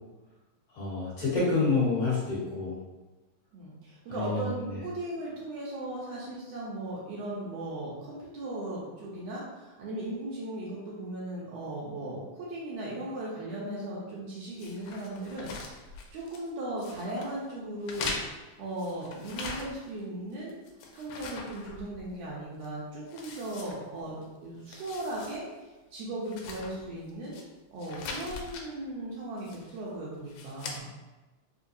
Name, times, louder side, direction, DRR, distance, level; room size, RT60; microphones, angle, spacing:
voice 1, 0.8-2.8 4.1-4.8, left 3 dB, 55° left, -10 dB, 1.7 m, -28 dB
voice 2, 3.5-15.5 16.1-20.5 20.9-25.5 25.9-27.4 27.7-30.9, right 1 dB, 75° right, -5 dB, 1.6 m, -37 dB
sound 1, 14.6-16.5 16.8-17.3 17.8-20.0 20.3-22.2 22.6-22.7 23.1-24.3 24.6-25.4 25.7-25.8 26.2-27.4 27.8-28.7 29.4-29.8 30.3-30.8, left 4 dB, 90° left, 2.0 m, -41 dB
4.6 x 2.2 x 2.6 m, 1.1 s
omnidirectional pair, 3.3 m